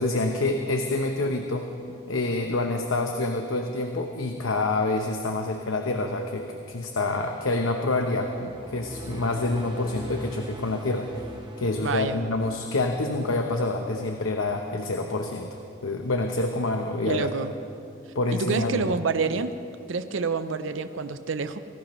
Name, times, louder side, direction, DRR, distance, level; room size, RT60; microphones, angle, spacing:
voice 1, 0.0-1.7 2.1-11.1 11.6-17.3 18.1-18.9, left 2 dB, 90° left, 4 dB, 0.9 m, -27 dB
sound 1, 8.0-14.5, right 1 dB, 25° right, 1.0 m, -43 dB
voice 2, 11.8-12.2 17.1-17.5 18.3-19.6 19.9-21.6, right 4 dB, 75° right, 10 dB, 0.6 m, -28 dB
25.0 x 17.5 x 3.1 m, 2.6 s
head